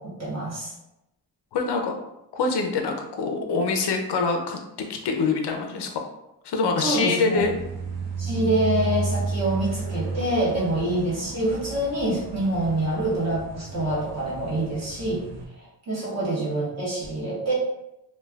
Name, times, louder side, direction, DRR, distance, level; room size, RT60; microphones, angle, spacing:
voice 1, 0.2-0.7 6.8-7.4 8.2-15.2 15.6-17.5, right 1 dB, 35° right, -7 dB, 1.1 m, -26 dB
voice 2, 1.5-1.9 2.3-4.6 4.9-5.9 6.4-7.6 16.0-16.1 16.3-16.4, left 4 dB, 65° left, 3 dB, 0.5 m, -25 dB
sound 1, 7.4-15.5, right 4 dB, 60° right, 0.5 m, -33 dB
3.2 x 2.2 x 2.2 m, 0.87 s
wide cardioid pair, 140°, 44 cm